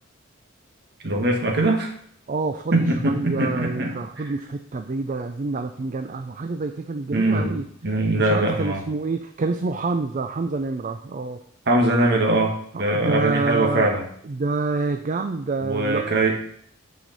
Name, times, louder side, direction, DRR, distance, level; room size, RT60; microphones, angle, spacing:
voice 1, 1.0-1.9 2.7-4.0 7.1-8.8 11.7-14.0 15.6-16.4, right 2 dB, 55° right, 1 dB, 1.4 m, -22 dB
voice 2, 2.3-7.7 8.2-11.4 12.7-13.9 14.2-16.2, right 3 dB, 40° right, 6 dB, 0.4 m, -27 dB
9.0 x 5.0 x 4.0 m, 0.66 s
head